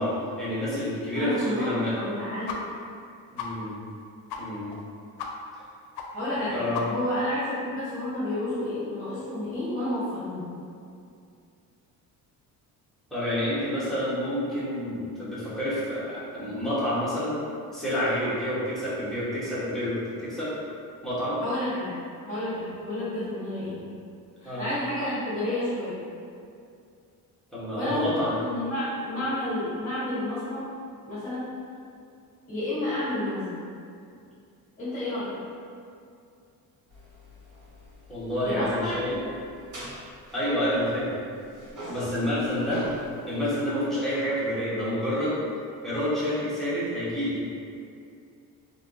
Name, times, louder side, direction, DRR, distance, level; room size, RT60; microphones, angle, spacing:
voice 1, 0.0-1.9 3.3-3.8 4.4-4.7 6.5-6.9 13.1-17.3 17.7-20.5 21.0-21.4 24.4-24.6 27.5-28.4 38.1-39.2 40.3-41.1 41.9-42.8 43.3-45.3 45.8-47.4, left 1 dB, ahead, -12 dB, 1.0 m, -28 dB
voice 2, 1.1-2.6 6.1-10.5 21.4-21.9 22.3-23.8 24.4-26.0 27.7-30.7 31.1-31.4 32.5-33.6 34.8-35.4 38.4-39.3, left 1 dB, 20° left, -15 dB, 1.3 m, -30 dB
sound 1, 2.5-2.6 2.9-3.0 3.4-3.5 3.9-4.0 4.3-4.4 4.7-4.8 5.2-5.3 5.6-5.7 6.0-6.1 6.4-6.5 6.7-7.1, left 7 dB, 80° left, 0.5 m, -35 dB
sound 2, 36.9-41.1 41.4-43.5, equal, 55° right, 1.1 m, -43 dB
3.5 x 2.7 x 2.5 m, 2.4 s
cardioid pair, 150°, 37 cm